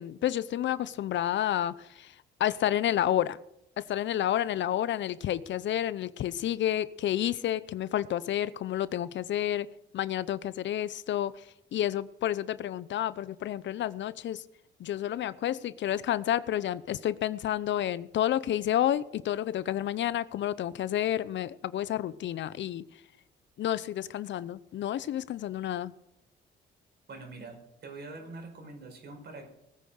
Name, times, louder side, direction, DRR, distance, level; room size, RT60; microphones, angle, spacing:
voice 1, 0.0-2.1 2.4-3.4 3.8-9.7 9.9-11.4 11.7-14.4 14.8-22.9 23.6-25.9, left 11 dB, 70° left, 17 dB, 0.7 m, -30 dB
voice 2, 27.1-29.5, right 3 dB, 55° right, 4 dB, 5.3 m, -44 dB
19.5 x 8.6 x 6.5 m, 0.84 s
cardioid pair, 90°, 20 cm